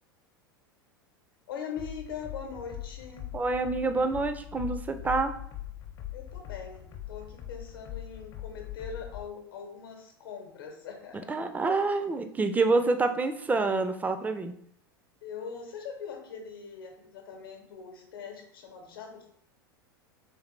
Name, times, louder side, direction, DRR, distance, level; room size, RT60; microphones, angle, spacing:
voice 1, 1.5-3.3 6.1-11.4 11.7-12.0 15.2-19.3, left 6 dB, 70° left, 3 dB, 0.8 m, -42 dB
sound 1, 1.8-9.3, left 13 dB, 45° left, 0.6 m, -41 dB
voice 2, 3.3-5.3 11.3-14.5, right 3 dB, 15° right, 8 dB, 0.4 m, -27 dB
3.4 x 3.3 x 3.1 m, 0.67 s
hypercardioid pair, 90°, 12 cm